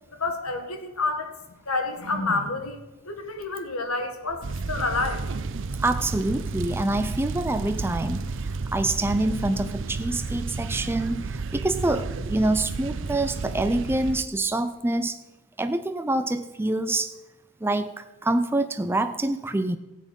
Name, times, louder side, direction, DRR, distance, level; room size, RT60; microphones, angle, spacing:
voice 1, 0.2-1.3 1.7-5.2, left 3 dB, 85° left, 6 dB, 1.7 m, -29 dB
sound 1, 4.4-14.2, right 3 dB, 60° right, 0.6 m, -32 dB
voice 2, 5.8-15.2 15.6-17.1 17.6-19.8, right 2 dB, 10° right, 9 dB, 0.4 m, -26 dB
15.0 x 8.5 x 5.3 m, 1.0 s
head